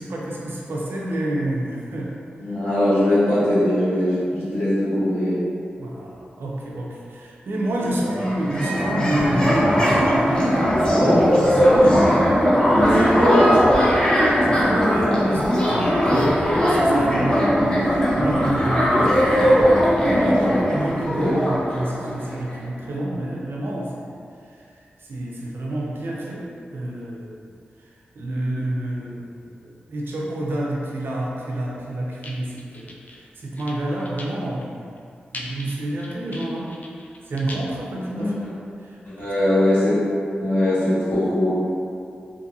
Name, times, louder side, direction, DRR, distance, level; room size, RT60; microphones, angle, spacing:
voice 1, 0.0-2.2 5.8-10.0 11.3-12.9 14.2-19.1 20.0-24.2 24.4-24.6 25.0-27.5 28.2-35.0 35.3-36.7 37.2-38.3 38.8-39.0, right 1 dB, 75° right, -3 dB, 0.5 m, -29 dB
voice 2, 2.4-5.4 8.0-8.1 10.8-11.2 11.8-11.9 12.7-13.9 20.1-20.5 21.2-21.4 38.2-38.3 39.0-40.0 40.4-41.5, left 1 dB, 75° left, -12 dB, 1.4 m, -21 dB
sound 1, 7.7-7.8 8.0-22.6, equal, 25° left, 0.8 m, -19 dB
sound 2, 32.1-33.2 33.5-34.7 35.0-35.1 35.3-37.7, left 2 dB, 45° left, 0.4 m, -39 dB
2.6 x 2.5 x 2.6 m, 2.4 s
cardioid pair, 40°, 4 cm